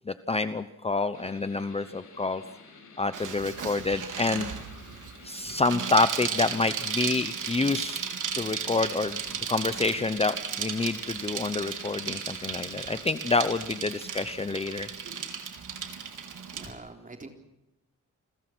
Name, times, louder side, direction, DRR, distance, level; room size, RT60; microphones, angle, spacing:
voice 1, 0.1-2.4 3.0-4.5 5.2-8.1 8.4-9.2 9.5-14.9, left 3 dB, 20° left, 12 dB, 0.8 m, -28 dB
sound 1, 1.1-13.3, left 4 dB, 70° left, 7.4 m, -52 dB
Bicycle, 3.1-16.7, right 7 dB, 80° right, 3.8 m, -35 dB
voice 2, 16.5-17.3, right 3 dB, 25° right, 4 dB, 3.8 m, -44 dB
29.5 x 22.0 x 6.2 m, 0.87 s
wide cardioid pair, 155°, 31 cm